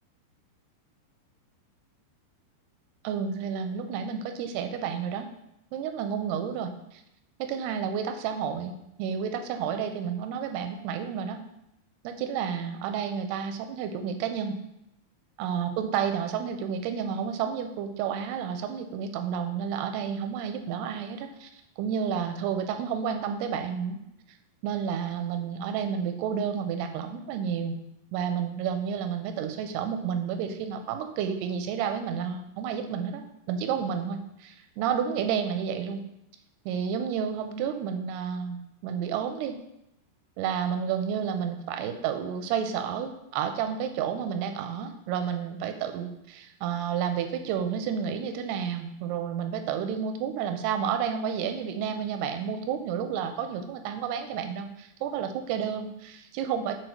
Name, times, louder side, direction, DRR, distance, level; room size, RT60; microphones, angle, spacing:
voice 1, 3.0-5.3 5.7-7.0 7.4-11.4 12.0-14.6 15.4-21.5 21.8-24.0 24.6-27.8 28.1-33.2 33.5-36.0 36.7-39.6 40.4-56.7, right 7 dB, 90° right, 7 dB, 2.6 m, -31 dB
7.8 x 4.5 x 3.0 m, 0.83 s
omnidirectional pair, 4.6 m